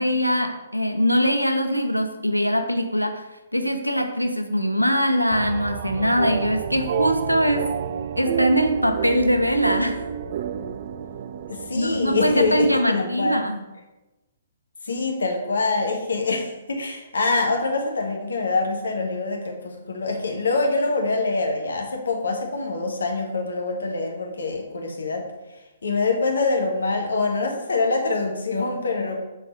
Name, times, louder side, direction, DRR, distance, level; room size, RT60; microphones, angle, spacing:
voice 1, 0.0-3.3 3.5-7.8 8.2-10.0 11.7-13.5, equal, 90° right, 6 dB, 0.7 m, -22 dB
sound 1, 5.3-12.8, right 8 dB, 45° right, 0.3 m, -30 dB
voice 2, 11.5-13.5 14.8-25.3 25.8-29.2, left 3 dB, 65° left, 2 dB, 1.3 m, -25 dB
6.5 x 4.1 x 5.3 m, 1.0 s
figure-of-eight pair, 125°, 0 cm